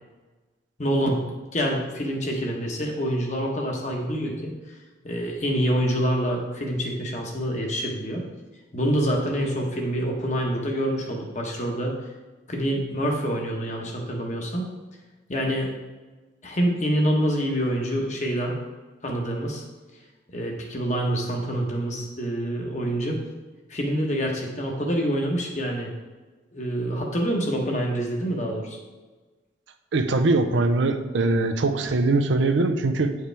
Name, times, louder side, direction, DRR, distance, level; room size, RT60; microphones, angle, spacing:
voice 1, 0.8-1.2 1.5-4.5 5.0-8.2 8.7-11.9 12.5-14.7 15.3-15.7 16.4-18.6 19.0-19.6 20.3-23.2 23.7-25.9 26.5-28.8, equal, 40° left, 0 dB, 1.1 m, -26 dB
voice 2, 29.9-33.2, right 2 dB, 90° right, 7 dB, 0.6 m, -22 dB
8.7 x 4.8 x 3.4 m, 1.2 s
head